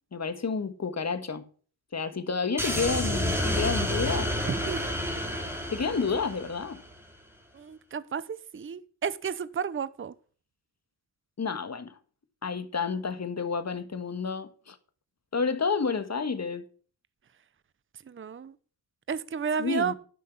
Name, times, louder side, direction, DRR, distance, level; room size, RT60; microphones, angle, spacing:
voice 1, 0.1-1.4 1.9-4.3 5.7-6.8 11.4-12.0 12.4-14.8 15.3-16.7 19.6-19.9, left 5 dB, 35° left, 1.6 m, -30 dB
sound 1, 2.6-6.9, equal, 5° right, 2.8 m, -30 dB
voice 2, 4.5-5.0 7.5-10.1 18.1-18.6 19.1-19.9, right 6 dB, 30° right, 0.7 m, -32 dB
11.0 x 6.1 x 7.1 m
cardioid pair, 65°, 44 cm